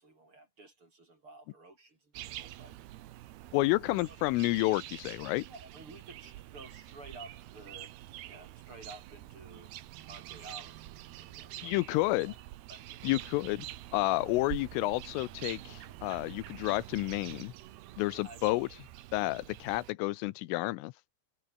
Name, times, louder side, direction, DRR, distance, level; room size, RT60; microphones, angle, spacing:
voice 1, 0.0-2.7 3.5-3.9 5.5-7.9 8.3-9.7 10.0-12.3 12.7-13.1 17.8-18.4 19.2-19.6, right 2 dB, 25° right, 5.0 m, -53 dB
sound 1, 2.1-19.9, right 14 dB, 70° right, 2.6 m, -46 dB
voice 2, 3.5-5.5 11.6-12.3 13.0-13.7 13.9-17.5 18.0-18.7 19.1-20.9, left 19 dB, 85° left, 3.3 m, -30 dB
omnidirectional pair, 5.8 m